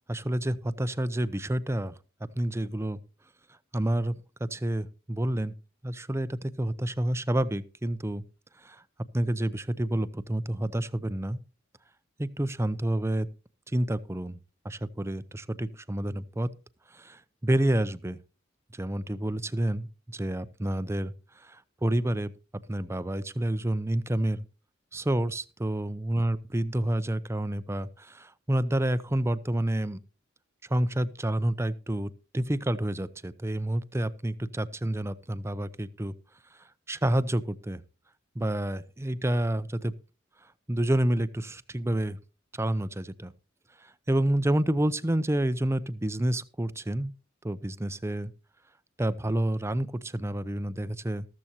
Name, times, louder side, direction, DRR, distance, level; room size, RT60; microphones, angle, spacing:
voice 1, 0.1-2.0 2.4-3.0 3.7-5.5 5.8-8.2 8.6-8.8 9.1-11.4 12.2-13.3 13.7-14.4 14.6-16.5 16.9-18.2 18.7-22.3 22.7-24.4 24.9-30.0 30.7-36.1 36.9-37.8 38.4-39.9 40.7-42.2 42.5-43.3 43.8-47.1 47.4-48.3 49.0-51.3, right 1 dB, 15° right, 15 dB, 0.6 m, -29 dB
14.0 x 13.5 x 2.8 m, 0.32 s
head